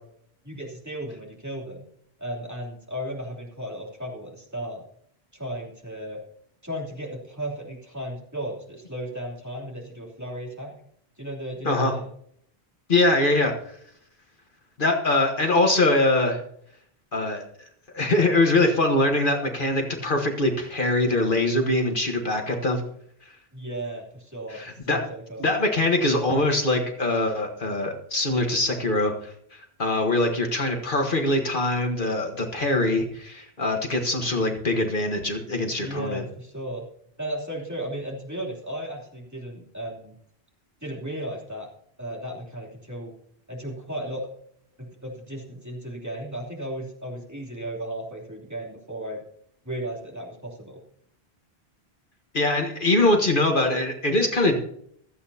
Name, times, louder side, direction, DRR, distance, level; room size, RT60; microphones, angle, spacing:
voice 1, 0.4-1.8 2.2-4.8 5.3-6.2 6.6-10.7 11.2-12.0 23.5-25.5 35.8-36.8 37.2-40.1 40.8-41.7 42.0-43.1 43.5-44.3 44.8-49.2 49.6-50.8, right 1 dB, 15° right, -2 dB, 3.0 m, -35 dB
voice 2, 12.9-13.8 14.8-16.4 17.1-17.4 17.9-22.8 24.5-25.0 25.4-36.2 52.3-54.6, left 2 dB, 55° left, 3 dB, 1.5 m, -23 dB
26.0 x 8.6 x 2.8 m, 0.67 s
omnidirectional pair, 1.0 m